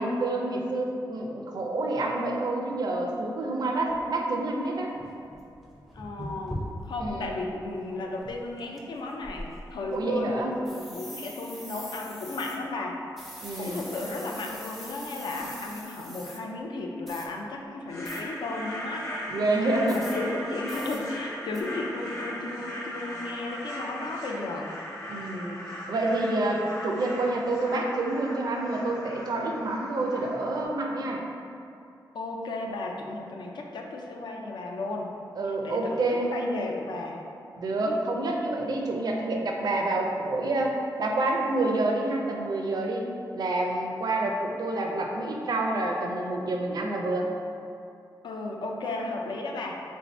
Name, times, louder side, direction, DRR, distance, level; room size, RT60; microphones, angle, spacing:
voice 1, 0.0-4.9 7.0-7.4 9.9-10.6 13.4-13.8 19.3-20.0 25.1-25.6 25.9-31.2 35.4-36.4 37.6-43.1 43.3-47.3, right 2 dB, 60° right, 0 dB, 0.4 m, -28 dB
sound 1, 3.1-3.2 3.9-4.0 4.6-4.7 4.9-7.4 7.7-7.9 8.2-8.8 9.2-10.0 10.7-12.6 13.2-16.4 17.1-17.3 18.0-18.2 19.9-20.2 20.7-21.0 21.5-21.6, equal, ahead, 0.4 m, -42 dB
voice 2, 5.9-13.0 13.6-19.1 19.8-24.7 32.1-35.1 35.6-36.0 36.3-37.2 37.8-38.1 48.2-49.8, left 2 dB, 75° left, 1 dB, 0.4 m, -34 dB
sound 2, 17.9-30.6, equal, 40° left, 0.8 m, -38 dB
3.4 x 2.6 x 3.1 m, 2.6 s
wide cardioid pair, 125°, 8 cm